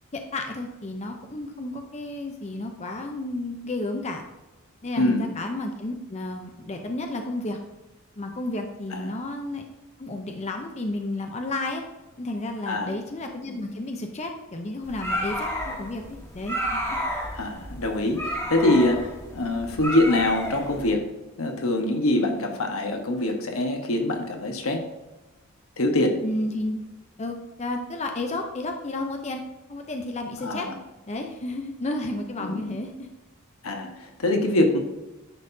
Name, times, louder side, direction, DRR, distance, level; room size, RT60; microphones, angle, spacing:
voice 1, 0.1-4.2 4.8-7.6 8.2-9.6 10.0-11.8 12.2-16.0 16.3-16.8 26.2-26.8 27.2-29.4 29.7-30.7 31.1-33.1, left 2 dB, 30° left, 4 dB, 0.6 m, -32 dB
voice 2, 5.0-5.3 8.9-9.1 12.7-12.9 17.4-21.1 21.4-24.9 25.8-26.2 30.4-30.7 32.4-32.8 33.6-34.8, left 1 dB, 80° left, 4 dB, 1.2 m, -24 dB
sound 1, 14.8-20.9, equal, 15° left, 1.4 m, -31 dB
9.9 x 5.7 x 2.7 m, 1.1 s
head